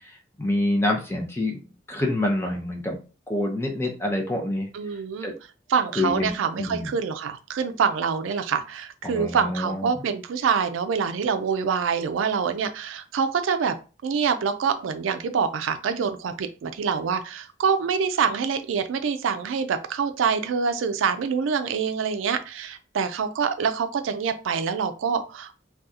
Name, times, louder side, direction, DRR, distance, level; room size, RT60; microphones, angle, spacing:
voice 1, 0.4-1.6 1.9-3.0 3.3-4.7 5.2-5.3 6.0-6.3 6.6-6.9 9.0-9.9, left 1 dB, 15° left, 1 dB, 0.6 m, -26 dB
voice 2, 4.7-5.3 5.7-13.8 14.0-25.7, right 6 dB, 90° right, 8 dB, 0.4 m, -26 dB
2.7 x 2.3 x 3.6 m, 0.34 s
head